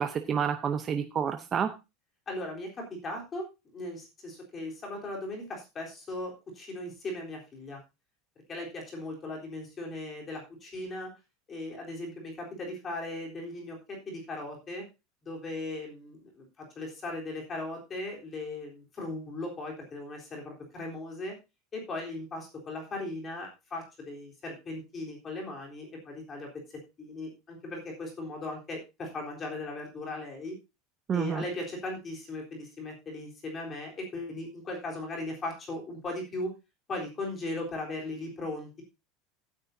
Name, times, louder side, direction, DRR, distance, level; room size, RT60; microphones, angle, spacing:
voice 1, 0.0-1.7 31.1-31.4, right 7 dB, 20° right, 6 dB, 0.8 m, -29 dB
voice 2, 2.3-7.8 8.5-11.1 11.5-14.9 15.2-21.4 21.7-26.6 27.0-30.6 31.1-36.5 36.9-38.8, left 2 dB, 20° left, 0 dB, 3.8 m, -38 dB
15.5 x 9.7 x 2.7 m, 0.27 s
supercardioid pair, 180°, 0 cm